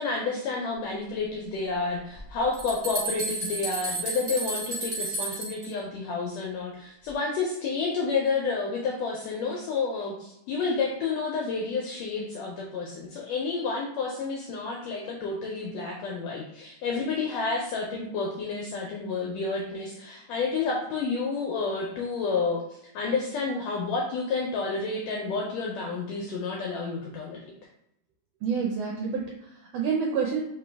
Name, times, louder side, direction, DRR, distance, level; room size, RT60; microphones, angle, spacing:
voice 1, 0.0-27.5, left 4 dB, 75° left, -1 dB, 1.6 m, -30 dB
sound 1, 2.2-2.3 2.5-5.7, right 2 dB, 50° right, 0.6 m, -32 dB
voice 2, 28.4-30.4, right 6 dB, 75° right, -1 dB, 1.5 m, -28 dB
4.3 x 2.9 x 3.3 m, 0.81 s
omnidirectional pair, 3.3 m